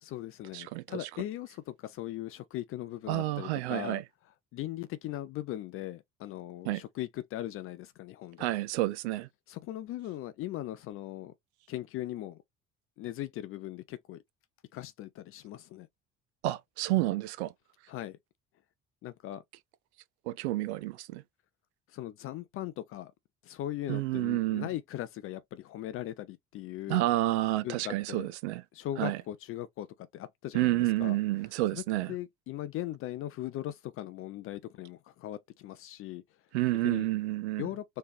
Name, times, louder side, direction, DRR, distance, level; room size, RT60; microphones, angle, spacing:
voice 1, 0.0-4.0 4.5-8.5 9.5-11.3 11.7-12.4 13.0-14.2 14.7-15.9 17.9-18.2 19.0-19.4 21.9-23.1 23.4-27.1 27.6-28.3 28.7-29.9 30.1-31.2 31.7-31.8 32.1-36.2 36.8-37.1 37.6-37.8, left 13 dB, 35° left, 0.4 m, -39 dB
voice 2, 0.5-1.1 3.1-4.0 6.6-6.8 8.4-9.3 16.4-17.5 20.3-21.2 23.9-24.7 26.9-28.6 29.0-29.2 30.5-32.1 36.5-37.7, right 17 dB, 60° right, 0.6 m, -30 dB
3.2 x 3.2 x 2.5 m
figure-of-eight pair, 55°, 37 cm